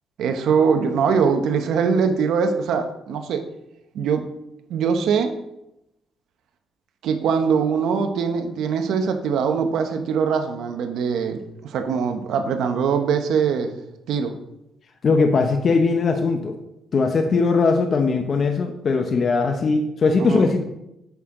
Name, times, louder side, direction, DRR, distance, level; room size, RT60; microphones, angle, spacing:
voice 1, 0.2-3.4 3.9-4.2 4.7-5.3 7.0-13.8 14.1-14.3 20.2-20.4, right 6 dB, 80° right, 7 dB, 1.0 m, -22 dB
voice 2, 15.0-16.6 16.9-20.6, left 4 dB, 50° left, 5 dB, 1.0 m, -20 dB
9.1 x 6.2 x 3.8 m, 0.85 s
cardioid pair, 90°, 0 cm